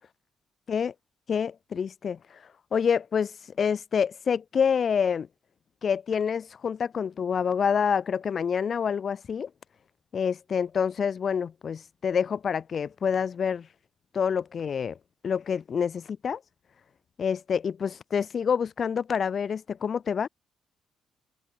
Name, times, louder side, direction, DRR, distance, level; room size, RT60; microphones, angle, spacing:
voice 1, 1.3-2.2 2.7-5.3 5.8-9.5 10.1-13.7 14.1-15.0 15.2-16.4 17.2-20.3, left 7 dB, 50° left, 0.4 m, -27 dB
open air
cardioid pair, 90°, 0 cm